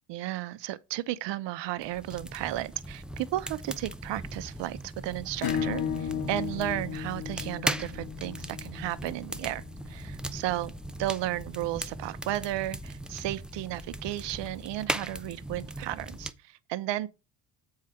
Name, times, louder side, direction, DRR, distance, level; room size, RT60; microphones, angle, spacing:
voice 1, 0.1-10.7 11.0-17.1, right 15 dB, 65° right, 0.8 m, -34 dB
sound 1, 1.8-16.3, right 1 dB, ahead, 0.6 m, -38 dB
Acoustic guitar / Strum, 5.4-10.7, left 8 dB, 50° left, 1.0 m, -35 dB
7.4 x 4.8 x 4.3 m
supercardioid pair, 70°, 47 cm